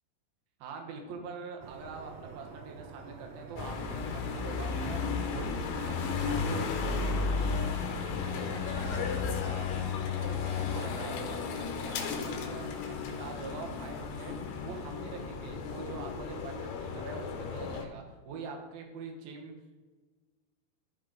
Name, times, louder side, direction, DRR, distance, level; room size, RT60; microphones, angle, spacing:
voice 1, 0.6-9.7 10.2-19.5, right 4 dB, 70° right, 2 dB, 2.4 m, -44 dB
sound 1, 1.6-16.7, right 5 dB, 85° right, 3.2 m, -49 dB
sound 2, 3.6-17.8, left 5 dB, 75° left, 2.6 m, -34 dB
13.5 x 5.2 x 3.9 m, 1.3 s
omnidirectional pair, 5.8 m